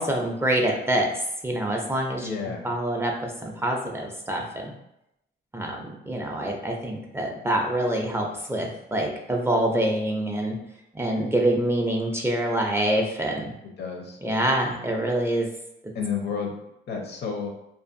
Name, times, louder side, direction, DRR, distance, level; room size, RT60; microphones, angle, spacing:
voice 1, 0.0-2.3 2.6-4.7 5.5-10.6 10.9-13.5 14.2-15.5, right 1 dB, 10° right, 0 dB, 0.4 m, -26 dB
voice 2, 2.2-2.7 13.8-14.2 15.9-16.5 16.9-17.5, left 6 dB, 55° left, 2 dB, 0.6 m, -30 dB
2.5 x 2.4 x 2.5 m, 0.85 s
cardioid pair, 90°, 20 cm